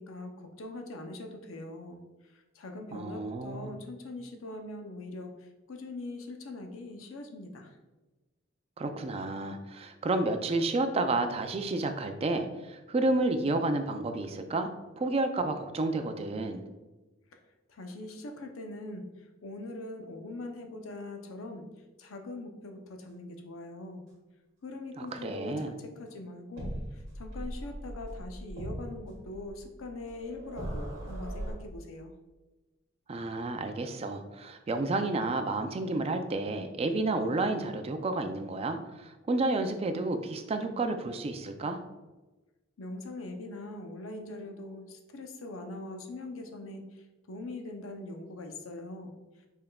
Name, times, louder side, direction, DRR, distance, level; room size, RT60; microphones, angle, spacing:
voice 1, 0.0-2.0 2.2-7.8 17.7-24.0 24.6-32.1 42.8-49.1, left 2 dB, 85° left, 4 dB, 0.6 m, -42 dB
voice 2, 2.9-3.7 8.8-14.7 15.0-16.6 25.0-25.7 33.1-41.8, right 2 dB, 30° right, 7 dB, 0.3 m, -31 dB
sound 1, 26.6-31.5, right 1 dB, 60° right, 1.4 m, -39 dB
5.5 x 3.5 x 2.3 m, 1.1 s
head